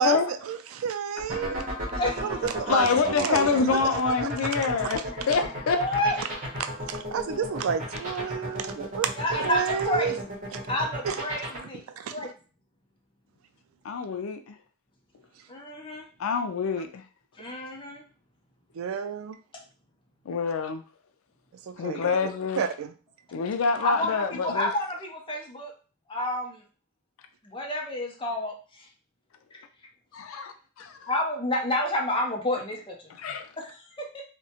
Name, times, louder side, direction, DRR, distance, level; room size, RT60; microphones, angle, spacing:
voice 1, 0.0-1.7 2.2-3.8 6.6-10.2 10.5-10.6 11.0-11.2 11.9-12.1 18.7-19.4 21.7-22.2 22.6-22.9, right 7 dB, 80° right, 0.3 m, -30 dB
sound 1, 1.2-11.6, equal, 40° right, 1.0 m, -34 dB
voice 2, 2.0-2.4 5.7-6.2 9.2-10.3 10.7-11.8 12.1-12.3 15.5-16.1 17.4-18.0 23.8-25.7 26.1-26.6 27.4-28.9 30.3-30.4 31.1-33.1 33.6-34.2, left 1 dB, 25° left, 0.6 m, -29 dB
voice 3, 2.7-5.0 5.3-5.8 9.4-9.5 13.8-14.6 16.2-17.0 20.3-20.8 21.8-22.6 23.3-24.7 30.1-31.1 33.2-33.5, left 5 dB, 85° left, 0.4 m, -26 dB
2.7 x 2.2 x 2.8 m
head